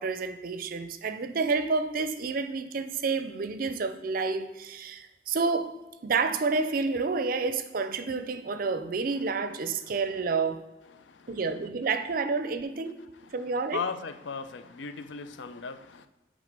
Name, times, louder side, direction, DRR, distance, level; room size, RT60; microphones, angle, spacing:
voice 1, 0.0-5.7 6.0-10.6 11.3-13.0 13.3-13.9, right 4 dB, 50° right, 0.5 m, -29 dB
voice 2, 13.7-16.1, left 5 dB, 90° left, 0.5 m, -36 dB
8.5 x 3.6 x 5.2 m
head